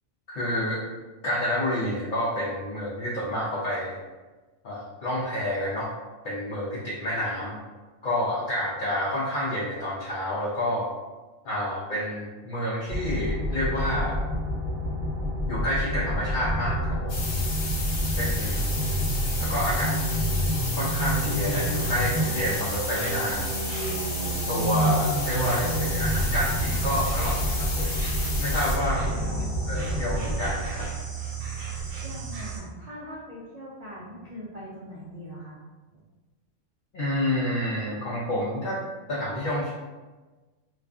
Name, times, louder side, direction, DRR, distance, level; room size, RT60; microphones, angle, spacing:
voice 1, 0.3-0.8 1.2-4.0 4.6-5.9 6.2-7.5 8.0-10.9 11.4-14.2 15.5-17.2 18.2-18.6 19.4-20.0 20.7-23.5 24.5-28.0 28.4-29.4 29.7-30.9 36.9-38.8 39.1-39.7, left 1 dB, 60° left, -7 dB, 0.5 m, -29 dB
sound 1, 12.9-30.9, equal, 25° right, 0.8 m, -28 dB
sound 2, 17.1-28.8, left 3 dB, 80° left, 1.0 m, -33 dB
Insect, 21.1-32.6, right 6 dB, 85° right, 1.0 m, -34 dB
voice 2, 32.0-35.6, equal, 70° right, -8 dB, 0.3 m, -41 dB
2.5 x 2.3 x 2.4 m, 1.2 s
omnidirectional pair, 1.3 m